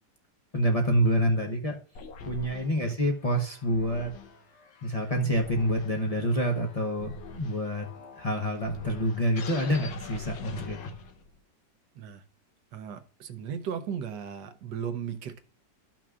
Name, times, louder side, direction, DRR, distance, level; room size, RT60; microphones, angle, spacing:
voice 1, 0.5-1.8 2.2-4.1 4.8-7.9 8.2-10.9, equal, 35° left, 1 dB, 0.6 m, -27 dB
sound 1, 2.0-11.4, left 3 dB, 85° left, 1.7 m, -44 dB
voice 2, 12.7-15.4, right 8 dB, 70° right, 8 dB, 1.3 m, -36 dB
13.5 x 5.9 x 2.4 m, 0.40 s
omnidirectional pair, 2.0 m